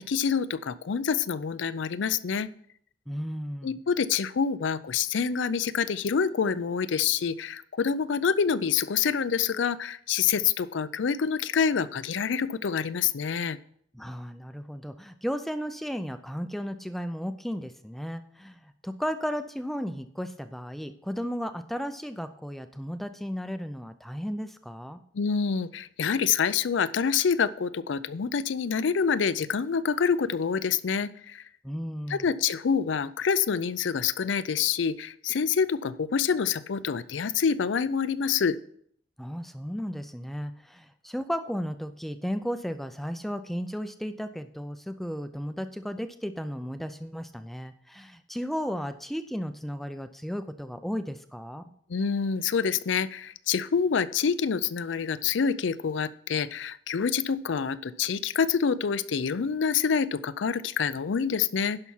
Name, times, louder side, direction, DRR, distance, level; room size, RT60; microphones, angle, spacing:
voice 1, 0.0-2.5 3.6-13.6 25.1-31.4 32.1-38.6 51.9-61.8, left 6 dB, 85° left, 16 dB, 0.5 m, -27 dB
voice 2, 3.1-3.8 13.9-25.0 31.6-32.3 39.2-51.7, equal, ahead, 10 dB, 0.4 m, -34 dB
11.0 x 5.7 x 5.5 m, 0.64 s
head